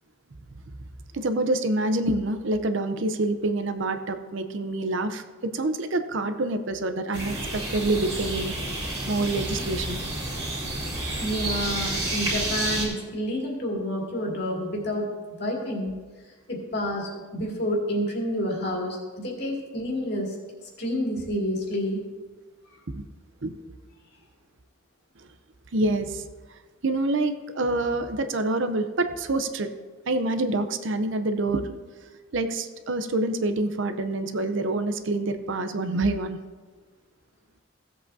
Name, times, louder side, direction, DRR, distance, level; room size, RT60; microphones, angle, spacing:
voice 1, 1.1-5.2 5.5-8.5 9.1-10.0 22.9-23.0 23.4-23.6 25.7-26.2 26.8-29.7 30.1-31.7 32.3-36.4, right 2 dB, 60° right, 9 dB, 0.6 m, -26 dB
sound 1, 7.1-12.9, right 2 dB, 20° right, 2.7 m, -30 dB
voice 2, 11.2-15.1 15.4-15.9 16.5-20.3 20.8-22.0, equal, 50° left, -1 dB, 2.2 m, -29 dB
16.0 x 7.8 x 2.6 m, 1.4 s
head